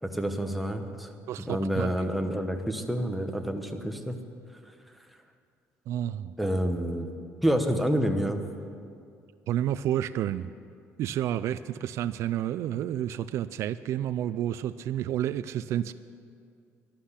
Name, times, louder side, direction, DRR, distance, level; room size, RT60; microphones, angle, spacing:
voice 1, 0.0-1.1 1.4-4.2 6.4-7.1 7.4-8.4, equal, ahead, 4 dB, 1.0 m, -28 dB
voice 2, 1.3-1.9 5.9-6.4 9.5-10.5 11.0-15.9, right 11 dB, 60° right, 14 dB, 0.4 m, -30 dB
12.0 x 11.5 x 8.2 m, 2.3 s
cardioid pair, 140°, 5 cm